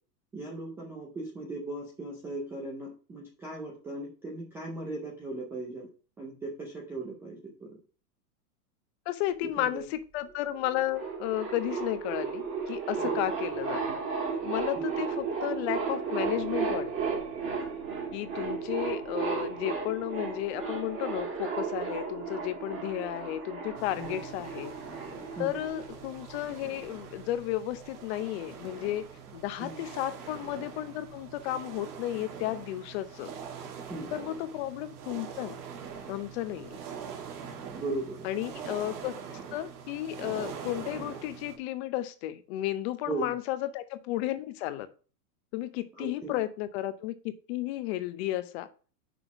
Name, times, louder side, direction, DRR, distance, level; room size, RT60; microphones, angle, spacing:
voice 1, 0.3-5.9 6.2-7.7 9.4-9.9 13.0-13.3 14.8-14.9 24.0-24.2 25.4-25.7 29.6-29.9 33.9-34.2 37.7-38.3 43.1-43.4 46.0-46.4, right 2 dB, 5° right, -2 dB, 0.3 m, -38 dB
voice 2, 9.1-14.0 14.4-17.1 18.1-24.7 25.4-29.0 29.3-33.3 34.1-35.6 36.1-36.8 38.2-39.1 39.5-44.9 45.5-47.2 47.5-48.7, left 14 dB, 40° left, 12 dB, 0.7 m, -33 dB
sound 1, 10.3-10.4 10.6-26.5, right 5 dB, 25° right, 1.8 m, -34 dB
sound 2, 23.7-41.6, right 7 dB, 65° right, 1.8 m, -43 dB
6.0 x 3.9 x 5.9 m, 0.38 s
hypercardioid pair, 130°, 49 cm